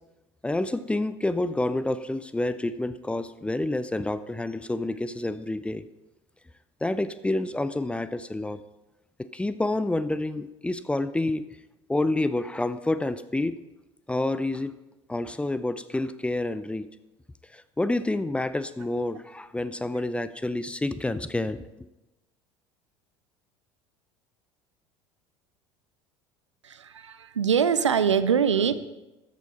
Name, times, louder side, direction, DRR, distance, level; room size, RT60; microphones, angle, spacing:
voice 1, 0.4-5.9 6.8-8.6 9.3-11.5 11.9-13.6 14.1-14.7 15.1-16.9 17.5-21.6, left 2 dB, 5° left, 14 dB, 0.5 m, -28 dB
voice 2, 26.6-28.8, right 7 dB, 80° right, 13 dB, 0.5 m, -23 dB
13.5 x 8.3 x 4.2 m, 1.0 s
figure-of-eight pair, 65°, 15 cm